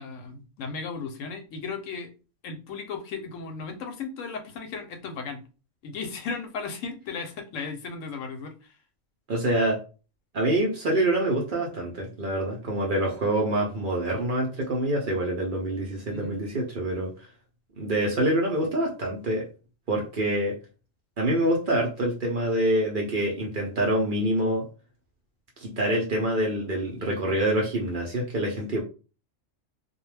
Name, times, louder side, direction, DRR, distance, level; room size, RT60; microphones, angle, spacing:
voice 1, 0.0-2.1 2.4-5.4 5.8-8.8 16.1-16.4, left 5 dB, 80° left, 5 dB, 0.9 m, -36 dB
voice 2, 9.3-9.8 10.3-17.1 17.8-19.5 19.9-20.5 21.2-24.6 25.6-28.8, right 1 dB, 55° right, -1 dB, 0.6 m, -26 dB
2.3 x 2.1 x 3.2 m, 0.33 s
omnidirectional pair, 1.3 m